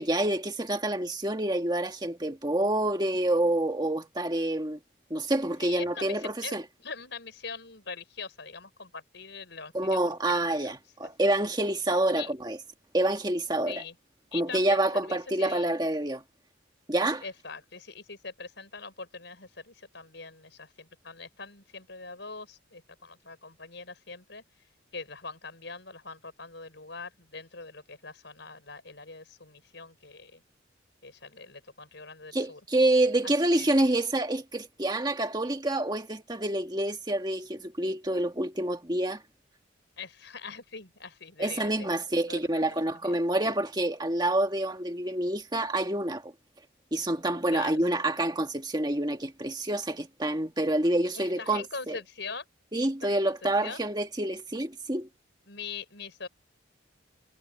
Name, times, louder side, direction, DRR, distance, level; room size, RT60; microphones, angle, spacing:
voice 1, 0.0-4.8 5.1-6.6 9.7-12.6 12.9-13.8 14.3-16.2 16.9-17.2 32.3-39.2 41.4-46.3 46.9-51.9 52.7-55.1, right 1 dB, 20° right, 1.6 m, -27 dB
voice 2, 5.6-6.5 6.8-10.0 10.3-10.7 12.1-12.3 13.7-14.0 14.3-15.7 17.2-24.4 24.9-30.4 31.0-32.7 33.2-33.7 40.0-43.2 47.5-47.8 51.1-52.5 53.0-53.8 55.5-56.3, left 4 dB, 65° left, 5.3 m, -42 dB
head